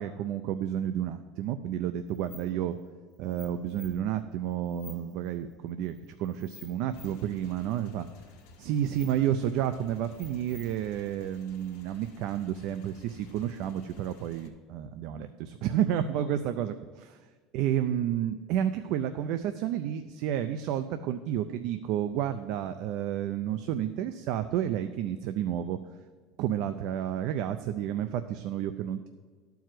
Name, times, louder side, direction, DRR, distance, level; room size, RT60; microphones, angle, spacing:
voice 1, 0.0-2.8 3.2-8.1 8.6-17.2 17.5-25.8 26.4-29.1, right 10 dB, 50° right, 9 dB, 0.4 m, -31 dB
sound 1, 2.0-12.5, left 4 dB, 5° left, 2.2 m, -54 dB
Motorcycle / Engine, 6.9-14.5, left 2 dB, 60° left, 1.4 m, -55 dB
12.5 x 4.7 x 7.6 m, 1.5 s
cardioid pair, 170°, 0 cm